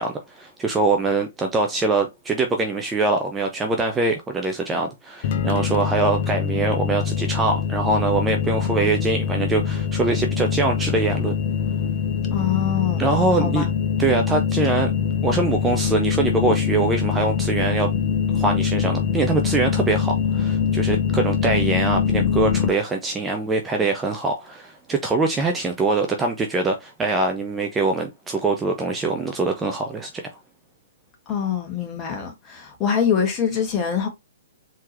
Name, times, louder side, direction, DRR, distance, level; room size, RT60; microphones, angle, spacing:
voice 1, 0.0-11.3 13.0-13.7 14.0-14.9 15.2-17.9 18.3-30.3, right 3 dB, 15° right, 0.7 m, -23 dB
sound 1, 5.2-22.7, left 7 dB, 50° left, 0.7 m, -23 dB
voice 2, 12.3-13.0 13.4-13.7 31.3-34.1, left 7 dB, 25° left, 1.7 m, -24 dB
4.5 x 3.7 x 3.0 m
figure-of-eight pair, 125°, 0 cm